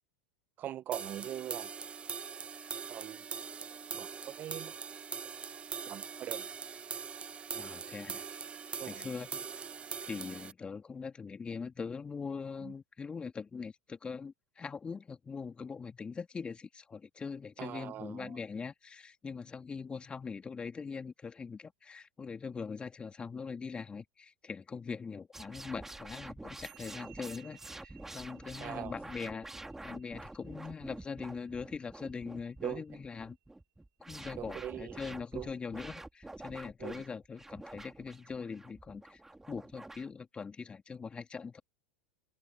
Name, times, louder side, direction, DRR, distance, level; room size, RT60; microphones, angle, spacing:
voice 1, 0.6-1.7 2.9-3.2 3.9-4.7 5.2-5.3 5.9-6.4 8.8-9.1 12.6-12.7 17.6-18.3 28.6-28.9 32.6-32.8 34.4-35.5 36.8-37.0, right 11 dB, 40° right, 1.5 m, -41 dB
sound 1, 0.9-10.5, right 6 dB, 25° right, 0.8 m, -42 dB
voice 2, 7.5-8.2 8.9-9.5 10.0-29.5 29.8-33.4 34.1-39.2 39.5-41.6, left 5 dB, 20° left, 2.8 m, -42 dB
sound 2, 25.3-40.1, right 2 dB, 5° right, 2.7 m, -48 dB
sound 3, 26.6-33.2, right 31 dB, 55° right, 7.3 m, -61 dB
open air
hypercardioid pair, 95°, 5 cm